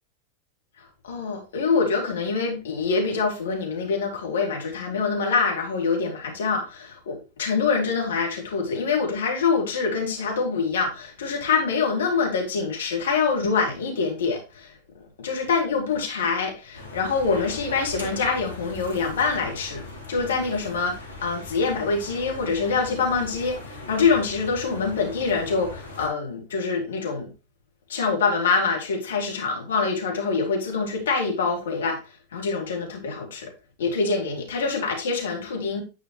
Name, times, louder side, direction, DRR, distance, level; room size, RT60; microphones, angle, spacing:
voice 1, 1.0-14.7 15.2-19.8 20.1-27.3 27.9-32.0 32.3-33.5 33.8-35.8, left 4 dB, 65° left, 2.6 m, -25 dB
sound 1, 16.7-26.1, left 2 dB, 85° left, 2.4 m, -39 dB
9.8 x 5.0 x 3.0 m
figure-of-eight pair, 90°, 0 cm